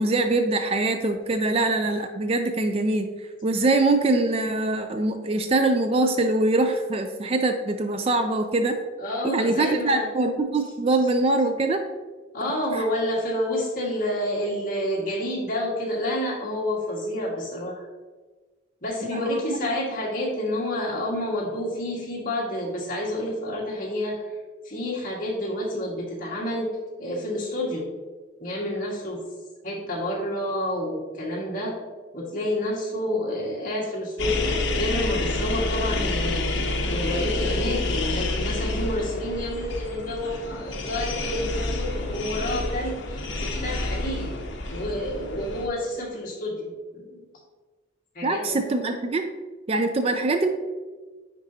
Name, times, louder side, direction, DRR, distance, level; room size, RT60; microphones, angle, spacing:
voice 1, 0.0-3.1 3.4-8.8 9.2-11.8 12.7-12.8 19.1-19.4 48.2-49.2 49.7-50.5, right 2 dB, 30° right, 7 dB, 0.3 m, -23 dB
voice 2, 9.0-10.1 12.3-17.9 18.8-24.2 24.6-27.9 28.4-29.2 29.6-31.8 32.1-36.4 36.9-44.3 44.7-47.4 48.1-48.6, left 1 dB, 45° left, -4 dB, 1.7 m, -29 dB
sound 1, 34.2-45.7, left 2 dB, 70° left, 0.9 m, -28 dB
9.7 x 3.9 x 2.8 m, 1.3 s
head